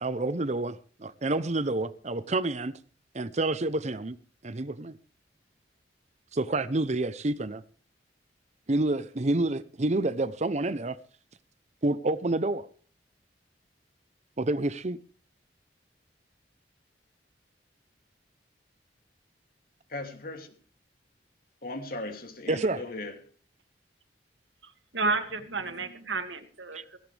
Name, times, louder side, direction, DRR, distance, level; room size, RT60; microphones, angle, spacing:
voice 1, 0.0-2.7 3.1-4.2 4.4-5.0 6.3-7.6 8.7-11.0 11.8-12.7 14.4-15.0 22.5-22.8 26.7-26.8, right 2 dB, 40° right, 0.8 m, -28 dB
voice 2, 19.9-20.5 21.6-23.2, left 2 dB, 55° left, 2.9 m, -38 dB
voice 3, 24.6-27.0, right 3 dB, 90° right, 2.3 m, -32 dB
17.0 x 17.0 x 3.4 m
head